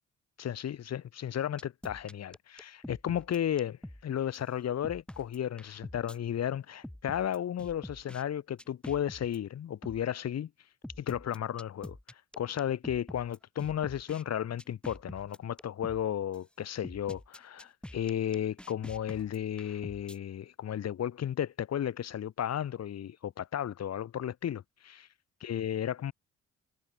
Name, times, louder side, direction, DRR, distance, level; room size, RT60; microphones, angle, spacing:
voice 1, 0.4-10.5 11.0-25.1 25.4-26.1, left 10 dB, 55° left, 1.9 m, -34 dB
sound 1, 1.6-4.0 4.3-4.4 4.8-6.2 6.8-8.2 8.6-9.4 9.8-10.0 10.8-14.2 14.6-16.0 16.3-16.4 16.8-20.2, left 1 dB, 5° left, 1.0 m, -46 dB
cardioid pair, 90°, 30 cm